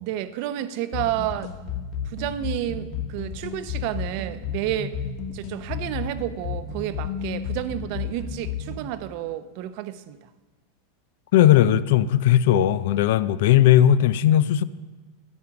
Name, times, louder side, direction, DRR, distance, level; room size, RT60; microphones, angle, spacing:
voice 1, 0.0-1.5 2.0-5.0 5.3-10.2, right 12 dB, 55° right, 0.7 m, -30 dB
sound 1, 0.9-8.9, left 6 dB, 55° left, 1.4 m, -32 dB
voice 2, 11.3-14.6, left 11 dB, 70° left, 0.5 m, -17 dB
9.3 x 8.6 x 5.9 m
supercardioid pair, 130°, 0 cm